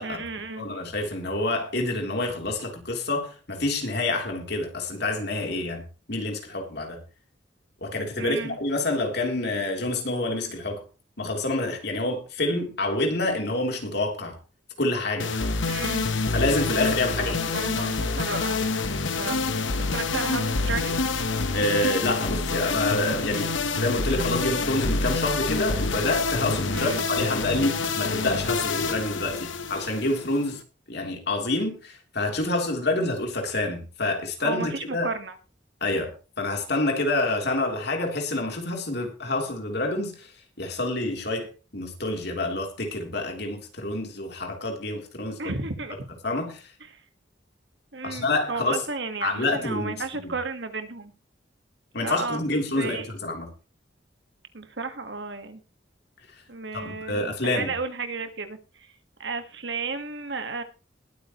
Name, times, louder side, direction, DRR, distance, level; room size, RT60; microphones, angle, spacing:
voice 1, 0.0-0.7 8.2-8.6 15.7-16.0 17.2-18.7 19.2-19.7 19.9-21.0 26.7-27.0 34.4-35.4 45.4-46.1 46.9-47.0 47.9-51.1 52.0-53.1 54.5-55.6 56.5-58.9 59.2-60.6, right 3 dB, 65° right, 9 dB, 1.7 m, -33 dB
voice 2, 0.6-5.8 6.1-7.0 7.8-10.8 11.2-14.4 14.8-15.3 16.3-17.9 21.5-23.5 23.8-30.6 30.9-35.1 35.8-40.3 40.6-45.6 46.2-46.7 48.0-48.8 49.2-50.3 51.9-53.5 56.7-57.7, left 2 dB, 60° left, 2 dB, 3.6 m, -27 dB
sound 1, 15.2-30.6, left 3 dB, 85° left, 1.2 m, -27 dB
20.5 x 9.0 x 3.1 m, 0.33 s
head